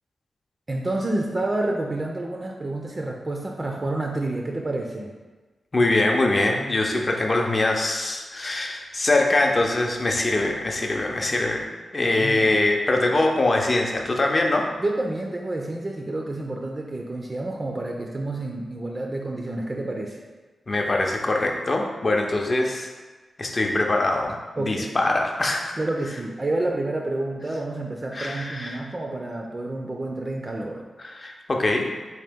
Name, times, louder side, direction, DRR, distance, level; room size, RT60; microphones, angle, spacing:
voice 1, 0.7-5.1 12.0-12.5 14.8-20.2 24.6-24.9 25.8-30.8, right 2 dB, 35° right, 1 dB, 0.4 m, -29 dB
voice 2, 5.7-11.6 11.9-14.7 20.7-22.9 23.4-25.7 28.1-28.8 31.0-31.9, left 2 dB, 40° left, 1 dB, 0.5 m, -23 dB
3.6 x 2.8 x 3.4 m, 1.3 s
cardioid pair, 75°, 0 cm